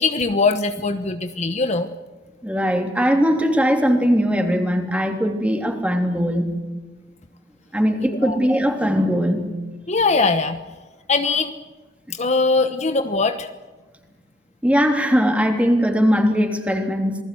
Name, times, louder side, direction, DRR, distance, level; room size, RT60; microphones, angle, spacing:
voice 1, 0.0-1.9 8.2-8.4 9.9-10.6 11.1-11.5 12.1-13.5, left 3 dB, 40° left, 8 dB, 1.1 m, -21 dB
voice 2, 2.4-6.6 7.7-9.5 12.1-12.2 14.6-17.2, equal, 5° right, 4 dB, 3.4 m, -20 dB
27.5 x 20.0 x 7.8 m, 1.2 s
head